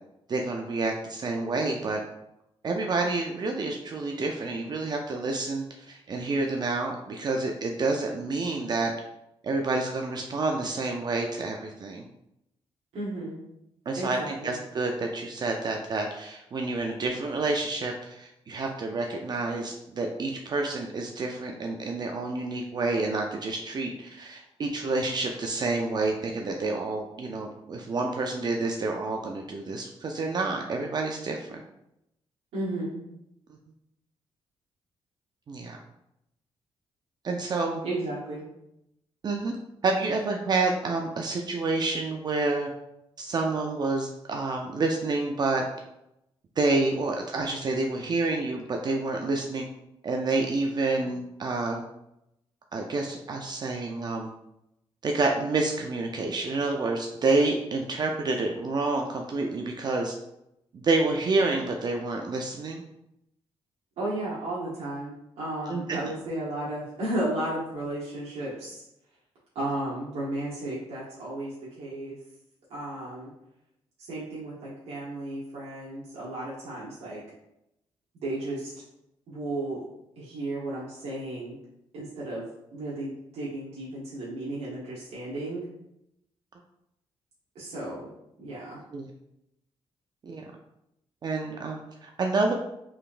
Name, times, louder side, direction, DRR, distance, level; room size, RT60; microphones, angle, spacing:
voice 1, 0.3-2.0 2.6-8.9 9.4-12.1 13.9-31.6 35.5-35.8 37.2-37.8 39.2-39.6 39.8-42.7 43.2-45.6 46.6-49.6 50.0-51.8 52.7-54.3 55.0-60.1 60.7-62.8 65.7-66.0 88.9-89.1 90.2-90.5 91.2-92.5, right 3 dB, 40° right, 2 dB, 0.4 m, -28 dB
voice 2, 12.9-13.4 13.9-14.6 32.5-33.0 37.8-38.5 64.0-68.8 69.5-72.2 72.7-73.3 74.0-77.2 78.2-78.7 79.3-79.8 80.2-81.6 81.9-82.4 82.7-85.6 87.5-88.1 88.4-88.8, right 1 dB, 80° right, -8 dB, 1.1 m, -34 dB
3.8 x 3.3 x 2.5 m, 0.83 s
cardioid pair, 90°, 10 cm